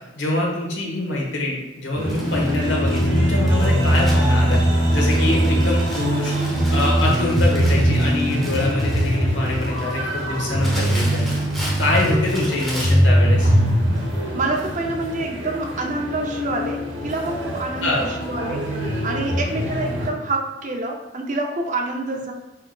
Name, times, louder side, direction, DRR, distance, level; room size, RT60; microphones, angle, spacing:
voice 1, 0.2-4.6 4.9-6.3 6.7-11.3 11.8-13.5 17.8-18.0, left 2 dB, 80° left, -2 dB, 1.2 m, -24 dB
sound 1, 2.0-20.1, equal, 90° right, 1.1 m, -21 dB
Crumpling crinkling, 2.1-13.1 13.9-14.1 14.4-14.5, equal, ahead, 0.8 m, -36 dB
voice 2, 14.3-22.3, right 2 dB, 40° right, 2 dB, 0.5 m, -27 dB
4.8 x 4.5 x 2.3 m, 1.0 s
head